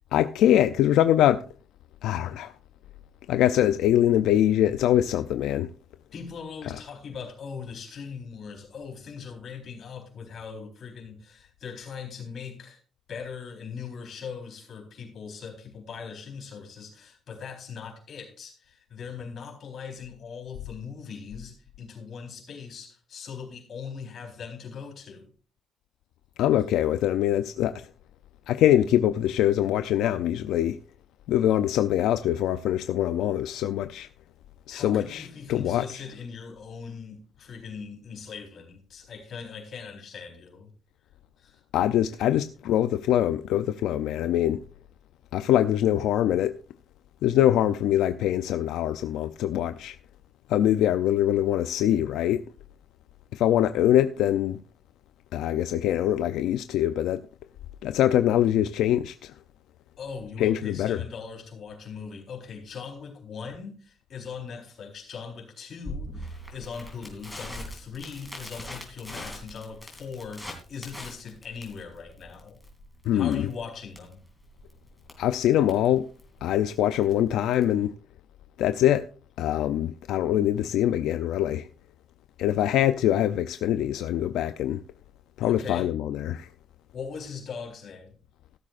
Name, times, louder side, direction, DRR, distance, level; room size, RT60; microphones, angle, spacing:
voice 1, 0.1-1.5 2.0-2.5 3.3-5.7 26.4-27.8 28.5-30.8 31.3-34.1 34.7-35.8 41.7-44.6 45.3-46.5 47.2-50.0 50.5-52.4 53.3-54.6 55.3-57.2 57.8-59.3 60.4-61.0 73.1-73.4 75.2-76.1 76.4-77.9 78.6-79.1 79.4-81.7 82.4-84.8 85.4-86.5, left 11 dB, 80° left, 0.5 m, -23 dB
voice 2, 6.1-12.8 13.1-25.3 34.7-40.7 41.4-41.6 42.2-42.3 60.0-72.6 73.1-74.2 85.4-85.9 86.9-88.2, left 6 dB, 40° left, 4.1 m, -40 dB
Crackle, 65.9-77.8, left 1 dB, 5° left, 2.8 m, -42 dB
15.0 x 12.5 x 2.5 m
cardioid pair, 180°, 0 cm